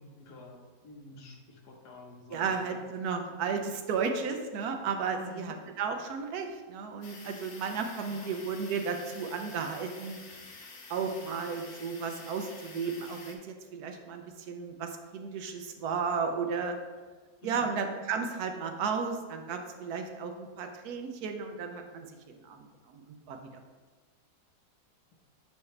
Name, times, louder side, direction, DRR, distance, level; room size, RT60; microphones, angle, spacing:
voice 1, 0.0-2.8 5.1-5.6 8.1-8.3 17.4-17.8, left 3 dB, 80° left, 0 dB, 1.6 m, -49 dB
voice 2, 2.3-10.2 10.9-16.8 17.4-23.4, right 5 dB, 75° right, 5 dB, 1.2 m, -34 dB
sound 1, 7.0-13.4, left 3 dB, 50° left, 1.2 m, -49 dB
8.1 x 4.8 x 3.2 m, 1.4 s
omnidirectional pair, 1.7 m